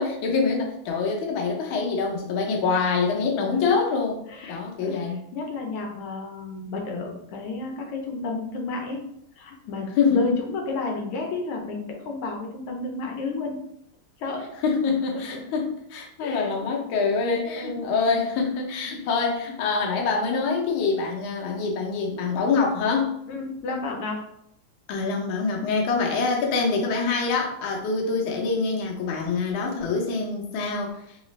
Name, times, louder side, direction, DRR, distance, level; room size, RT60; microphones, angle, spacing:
voice 1, 0.0-4.2 4.5-5.2 10.0-10.4 14.6-23.2 24.9-31.0, left 4 dB, 70° left, 0 dB, 1.4 m, -25 dB
voice 2, 4.3-9.0 9.4-13.6 14.2-14.5 15.1-15.4 16.2-16.5 17.4-17.9 18.9-19.1 23.3-24.2 25.9-26.1, left 3 dB, 85° left, 1 dB, 1.6 m, -32 dB
3.9 x 2.4 x 3.1 m, 0.73 s
omnidirectional pair, 2.4 m